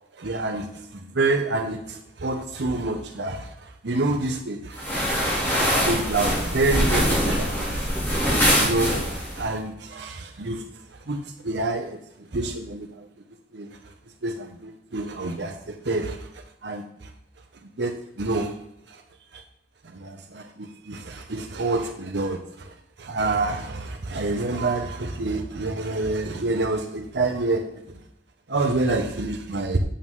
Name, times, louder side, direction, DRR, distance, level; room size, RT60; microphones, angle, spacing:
voice 1, 0.2-4.8 5.2-8.3 8.6-10.6 11.1-13.1 13.5-13.8 14.2-17.1 17.8-18.6 18.9-19.0 19.3-19.4 19.8-27.7 28.5-29.8, right 2 dB, 70° right, 4 dB, 0.8 m, -28 dB
sound 1, 4.8-9.4, equal, 10° left, 2.6 m, -23 dB
8.6 x 7.5 x 3.7 m, 0.76 s
head